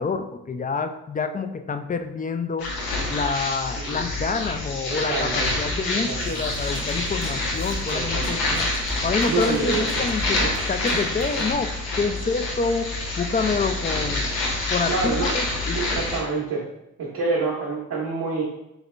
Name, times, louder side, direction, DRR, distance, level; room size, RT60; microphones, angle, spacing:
voice 1, 0.0-8.7 9.0-11.7 12.0-12.9 13.2-14.4 14.7-16.0, left 4 dB, 25° left, 8 dB, 0.4 m, -27 dB
sound 1, 2.6-16.2, left 2 dB, 85° left, 0.7 m, -27 dB
voice 2, 4.9-5.6 5.9-6.4 7.9-8.5 9.2-9.8 10.4-10.6 14.9-15.3 15.7-16.6 17.0-18.4, right 4 dB, 75° right, -6 dB, 1.0 m, -27 dB
Drum kit / Drum, 6.2-11.5, right 2 dB, 35° right, 0.8 m, -38 dB
4.0 x 2.8 x 3.2 m, 0.88 s
hypercardioid pair, 40°, 36 cm